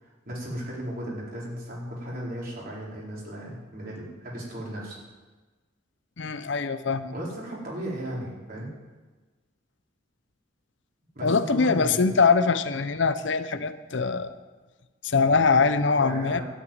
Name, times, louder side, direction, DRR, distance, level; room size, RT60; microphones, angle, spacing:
voice 1, 0.0-5.0 7.1-8.7 11.1-12.0 13.5-13.6 16.0-16.4, right 1 dB, 50° right, -5 dB, 4.4 m, -36 dB
voice 2, 6.2-7.1 11.2-14.4 15.0-16.4, left 4 dB, 70° left, 12 dB, 0.7 m, -23 dB
12.5 x 8.1 x 9.4 m, 1.3 s
head